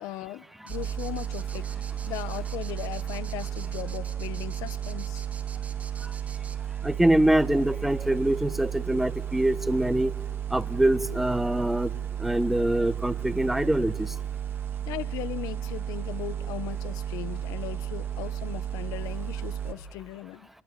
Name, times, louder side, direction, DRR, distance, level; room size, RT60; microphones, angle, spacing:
voice 1, 0.0-5.2 14.9-20.5, left 14 dB, 80° left, 1.0 m, -38 dB
sound 1, 0.7-6.6, right 4 dB, 20° right, 2.0 m, -47 dB
sound 2, 0.7-19.7, right 10 dB, 40° right, 2.0 m, -33 dB
voice 2, 6.8-10.1 10.5-11.9 12.2-14.1, right 1 dB, 5° right, 1.1 m, -24 dB
29.0 x 21.5 x 7.4 m
cardioid pair, 130°, 6 cm